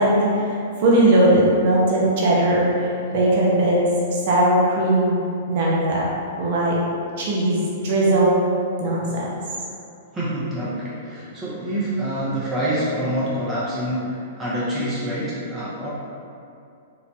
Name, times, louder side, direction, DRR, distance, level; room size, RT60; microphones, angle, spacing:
voice 1, 0.0-3.8 4.1-5.1 5.5-6.0 6.4-6.8 7.2-8.4 8.8-9.3, right 1 dB, 55° right, -5 dB, 0.7 m, -19 dB
voice 2, 10.1-15.9, right 1 dB, 15° right, -9 dB, 0.6 m, -26 dB
2.8 x 2.1 x 2.7 m, 2.5 s
hypercardioid pair, 115°, 0 cm